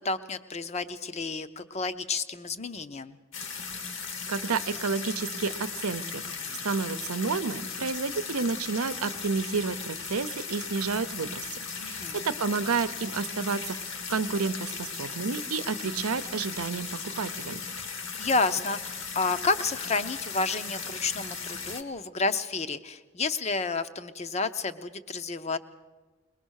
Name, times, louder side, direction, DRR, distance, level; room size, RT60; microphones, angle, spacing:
voice 1, 0.0-3.2 11.8-12.2 18.2-25.6, left 3 dB, 30° left, 12 dB, 0.7 m, -30 dB
sound 1, 3.3-21.8, left 5 dB, 60° left, 1.5 m, -37 dB
voice 2, 4.3-6.2 6.6-11.6 11.9-13.8 14.1-17.6, right 4 dB, 90° right, 13 dB, 0.7 m, -30 dB
22.5 x 20.0 x 6.4 m, 1.3 s
head